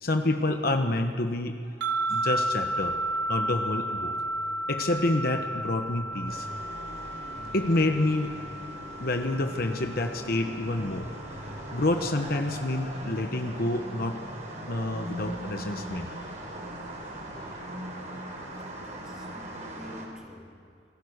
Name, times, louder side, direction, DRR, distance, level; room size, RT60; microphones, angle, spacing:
voice 1, 0.0-1.6 2.1-2.9 3.3-4.1 4.7-6.5 7.5-8.4 9.0-11.1 11.7-14.2 14.7-16.1, left 2 dB, 50° left, 5 dB, 1.2 m, -28 dB
sound 1, 1.8-11.1, right 1 dB, 75° right, 2.9 m, -33 dB
sound 2, 2.3-17.7, left 1 dB, 90° left, 4.3 m, -48 dB
sound 3, 6.3-20.1, right 1 dB, 40° right, 4.1 m, -40 dB
voice 2, 18.7-20.8, equal, 5° right, -1 dB, 3.1 m, -47 dB
28.5 x 20.0 x 6.6 m, 2.3 s
head